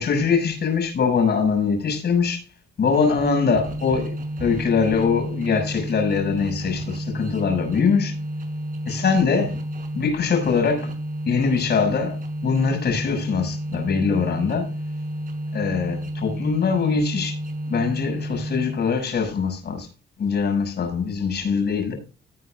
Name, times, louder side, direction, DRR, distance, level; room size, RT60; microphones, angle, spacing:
voice 1, 0.0-2.4 2.8-8.2 8.8-9.5 9.9-10.9 11.3-14.7 15.5-17.4 17.7-19.9 20.2-21.9, left 5 dB, 55° left, 6.6 m, -22 dB
sound 1, 2.9-19.0, right 1 dB, 45° right, 6.6 m, -31 dB
18.5 x 8.2 x 2.5 m
cardioid pair, 90°, 20 cm